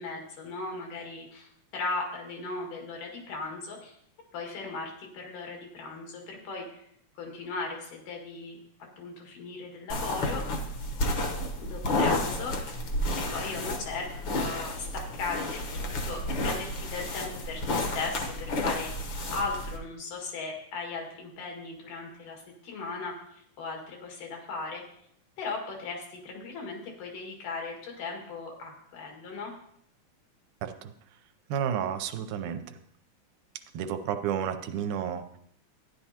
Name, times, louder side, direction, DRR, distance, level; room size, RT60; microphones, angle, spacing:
voice 1, 0.0-4.0 4.3-6.8 7.2-8.6 9.0-10.4 11.6-12.6 13.3-14.1 14.3-18.9 19.3-23.1 23.6-24.8 25.4-29.5, left 3 dB, 90° left, 0 dB, 3.6 m, -37 dB
sound 1, 9.9-19.8, left 1 dB, 60° left, 1.3 m, -31 dB
voice 2, 30.6-30.9 31.5-32.8 33.7-35.4, right 8 dB, 80° right, 8 dB, 2.1 m, -31 dB
13.0 x 10.0 x 2.9 m, 0.69 s
omnidirectional pair, 3.6 m